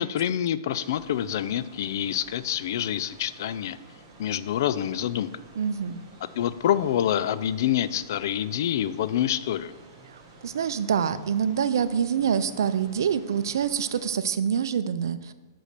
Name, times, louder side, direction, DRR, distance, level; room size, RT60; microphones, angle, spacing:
voice 1, 0.0-3.8 4.2-5.3 6.4-9.7, left 10 dB, 60° left, 14 dB, 0.4 m, -26 dB
sound 1, 0.7-14.1, right 3 dB, 25° right, 1.8 m, -51 dB
voice 2, 5.6-6.0 10.1-15.3, right 7 dB, 75° right, 13 dB, 0.5 m, -26 dB
5.6 x 5.1 x 6.6 m, 1.2 s
hypercardioid pair, 145°, 2 cm